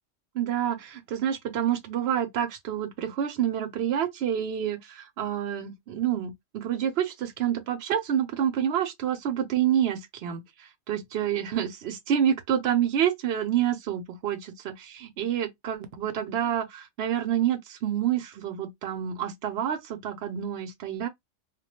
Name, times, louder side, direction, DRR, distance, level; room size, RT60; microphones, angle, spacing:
voice 1, 0.3-21.1, right 10 dB, 65° right, 0.7 m, -28 dB
2.3 x 2.1 x 2.8 m
omnidirectional pair, 1.3 m